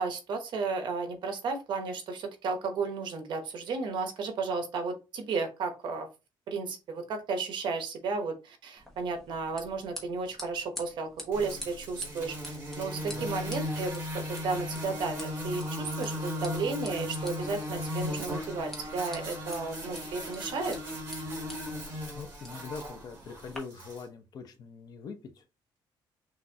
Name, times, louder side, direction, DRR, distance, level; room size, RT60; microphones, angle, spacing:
voice 1, 0.0-6.1 6.5-20.8, right 4 dB, 65° right, 1.0 m, -33 dB
sound 1, 8.8-23.6, left 1 dB, 5° left, 1.1 m, -49 dB
sound 2, 11.3-24.0, left 1 dB, 25° right, 2.5 m, -37 dB
voice 2, 22.1-25.4, left 5 dB, 50° left, 0.7 m, -43 dB
6.2 x 2.6 x 2.8 m
cardioid pair, 170°, 9 cm